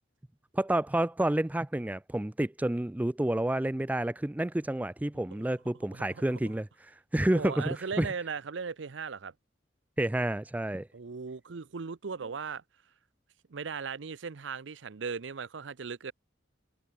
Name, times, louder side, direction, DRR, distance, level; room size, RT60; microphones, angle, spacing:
voice 1, 0.5-6.7 7.1-8.1 10.0-10.9, right 1 dB, 10° right, 0.4 m, -29 dB
voice 2, 5.9-6.6 7.3-9.3 10.9-12.6 13.5-16.1, right 5 dB, 70° right, 0.6 m, -38 dB
head